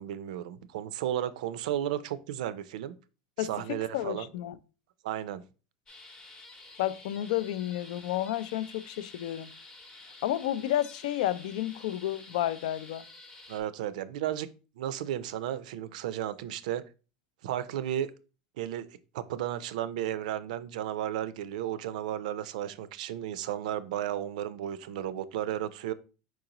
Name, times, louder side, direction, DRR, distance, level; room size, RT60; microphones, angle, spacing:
voice 1, 0.0-2.9 3.4-4.3 5.0-5.4 13.5-14.5 14.8-16.8 17.4-18.1 18.6-18.9 19.1-25.9, right 11 dB, 85° right, 0.4 m, -33 dB
voice 2, 3.9-4.6 6.8-9.5 10.2-13.1, left 13 dB, 75° left, 0.3 m, -31 dB
sound 1, 5.9-13.6, left 2 dB, 15° left, 0.7 m, -50 dB
4.7 x 3.9 x 2.9 m
supercardioid pair, 160°, 4 cm